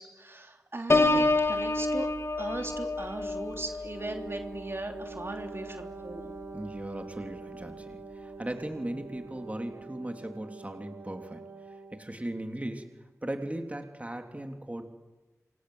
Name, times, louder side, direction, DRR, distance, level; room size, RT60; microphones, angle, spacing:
voice 1, 0.0-2.1 2.4-6.3, right 2 dB, 45° right, 4 dB, 3.0 m, -38 dB
Piano, 0.9-6.5 7.0-7.3, left 2 dB, 50° left, 2.4 m, -29 dB
Wind instrument woodwind instrument, 3.9-12.1, right 3 dB, 60° right, 5.1 m, -45 dB
voice 2, 6.5-11.4 11.7-12.9 13.2-14.8, right 1 dB, 25° right, 4 dB, 3.2 m, -38 dB
27.5 x 26.0 x 8.0 m, 1.2 s
wide cardioid pair, 55°, 6 cm